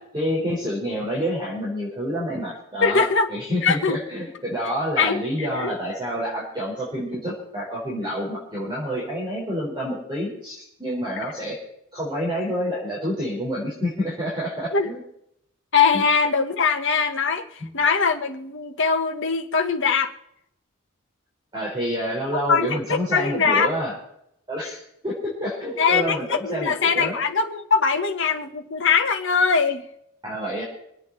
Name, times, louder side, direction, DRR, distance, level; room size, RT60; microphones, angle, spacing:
voice 1, 0.0-11.6 11.9-15.0 15.9-16.0 17.6-17.7 21.5-23.9 24.5-27.1 30.2-30.6, equal, 20° right, -6 dB, 4.4 m, -28 dB
voice 2, 2.8-3.3 3.6-4.0 5.0-5.7 8.0-8.1 14.7-14.9 15.7-17.5 17.7-20.1 22.5-23.7 25.8-29.8, left 5 dB, 55° left, 5 dB, 1.5 m, -22 dB
25.5 x 9.1 x 4.2 m, 0.76 s
head